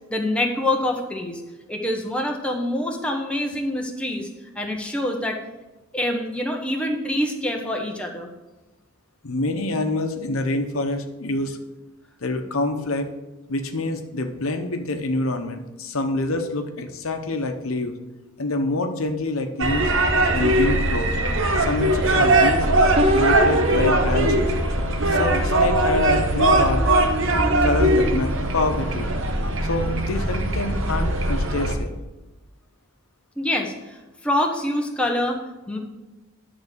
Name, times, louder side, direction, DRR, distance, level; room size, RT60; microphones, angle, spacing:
voice 1, 0.1-1.4 1.7-4.3 4.6-5.4 5.9-8.3 33.4-34.0 34.2-35.4 35.7-35.8, left 1 dB, 5° left, 0 dB, 1.0 m, -25 dB
voice 2, 9.2-11.6 12.2-13.1 13.5-18.0 18.4-19.9 20.3-21.2 21.6-22.7 23.1-24.5 25.0-26.8 27.3-29.1 29.6-31.9, left 2 dB, 85° left, 6 dB, 0.9 m, -26 dB
sound 1, 19.6-31.7, right 1 dB, 65° right, 0.9 m, -20 dB
sound 2, 23.0-25.7 26.2-28.7, equal, 30° right, 0.6 m, -28 dB
11.0 x 3.6 x 6.7 m, 1.1 s
head